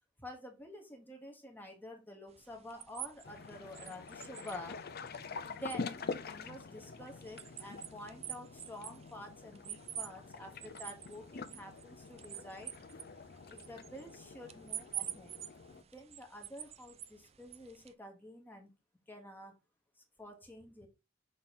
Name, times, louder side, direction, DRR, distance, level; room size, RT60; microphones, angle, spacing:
voice 1, 0.2-4.8 5.5-12.7 13.5-15.4 15.9-18.7 19.1-19.6 20.2-20.9, left 1 dB, 10° left, 2 dB, 1.1 m, -49 dB
sound 1, 2.3-17.9, right 11 dB, 30° right, 0.4 m, -48 dB
sound 2, 3.2-15.8, left 4 dB, 50° left, 0.5 m, -46 dB
6.4 x 3.7 x 4.0 m, 0.26 s
head